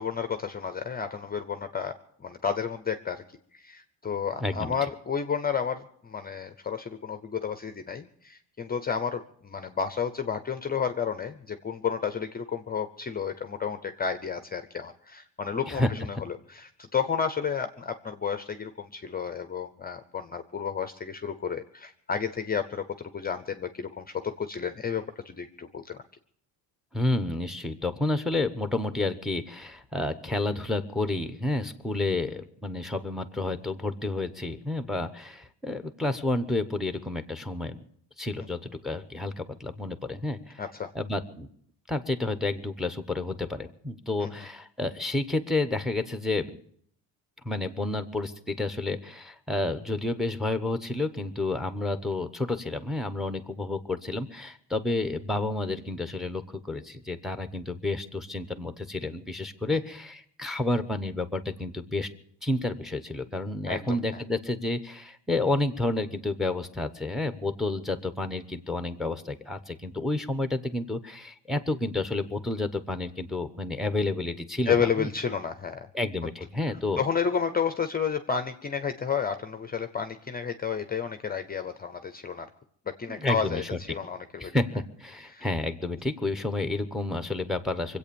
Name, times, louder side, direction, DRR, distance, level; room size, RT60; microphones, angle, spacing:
voice 1, 0.0-3.2 3.5-26.0 40.6-40.9 44.2-44.3 59.7-59.8 63.7-64.0 74.7-75.9 77.0-82.5 82.9-84.5 85.3-85.5, left 6 dB, 20° left, 9 dB, 0.7 m, -31 dB
voice 2, 4.4-4.8 15.7-15.9 26.9-37.8 38.2-40.6 40.9-41.5 41.9-46.6 47.4-62.1 62.4-75.1 75.9-77.0 83.1-83.6 83.9-84.0 84.4-88.0, left 2 dB, ahead, 10 dB, 0.9 m, -30 dB
24.5 x 8.4 x 7.0 m, 0.64 s
cardioid pair, 160°, 42 cm